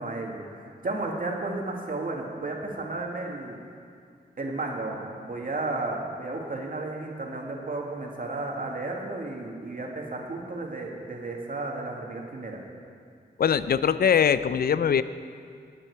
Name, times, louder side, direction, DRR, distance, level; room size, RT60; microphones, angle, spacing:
voice 1, 0.0-3.6 4.4-12.6, right 2 dB, 55° right, 0 dB, 1.9 m, -33 dB
voice 2, 13.4-15.0, left 7 dB, 65° left, 14 dB, 0.5 m, -22 dB
18.0 x 7.6 x 4.7 m, 2.2 s
cardioid pair, 65°, 17 cm